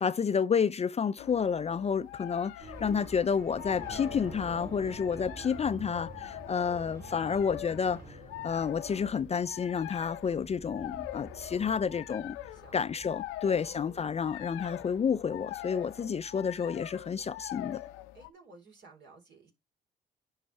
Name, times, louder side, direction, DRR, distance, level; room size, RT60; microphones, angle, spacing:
voice 1, 0.0-8.2 8.4-12.4 12.7-17.8, left 6 dB, 35° left, 0.4 m, -30 dB
sound 1, 1.2-18.3, left 15 dB, 85° left, 0.6 m, -44 dB
sound 2, 2.6-15.1, right 2 dB, 45° right, 3.1 m, -48 dB
voice 2, 12.5-12.8 13.4-13.9 18.1-19.5, right 3 dB, 65° right, 4.0 m, -56 dB
10.0 x 5.7 x 3.3 m
supercardioid pair, 55°, 20 cm